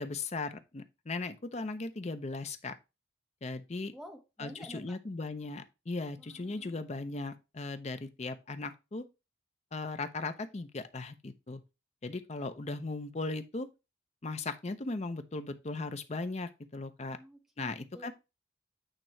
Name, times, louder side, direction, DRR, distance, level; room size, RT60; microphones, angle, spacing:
voice 1, 0.0-2.7 3.4-3.9 4.4-9.0 9.7-11.6 12.0-13.7 14.2-17.2 17.6-18.1, left 3 dB, 35° left, 0.6 m, -38 dB
voice 2, 3.9-5.0 6.2-6.8 17.1-18.1, equal, ahead, 0.8 m, -50 dB
8.9 x 3.0 x 4.4 m
head